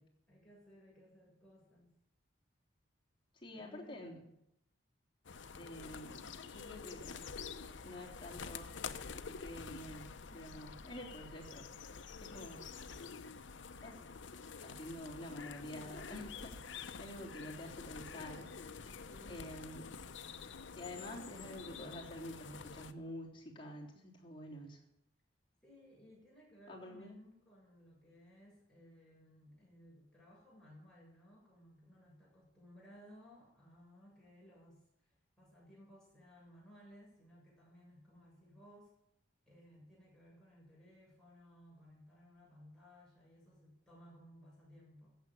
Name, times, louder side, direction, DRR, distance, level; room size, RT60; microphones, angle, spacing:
voice 1, 0.3-1.9 3.5-4.4 19.1-19.5 25.6-38.9 39.5-45.1, equal, 5° left, -6 dB, 7.4 m, -60 dB
voice 2, 3.4-4.2 5.6-7.4 7.8-8.8 9.1-11.7 12.2-12.6 13.8-14.0 14.6-18.5 19.3-19.9 20.8-24.8 26.7-27.1, left 1 dB, 25° left, -3 dB, 3.4 m, -48 dB
sound 1, 5.2-22.9, left 5 dB, 70° left, 0.7 m, -48 dB
15.0 x 7.3 x 9.2 m, 0.79 s
head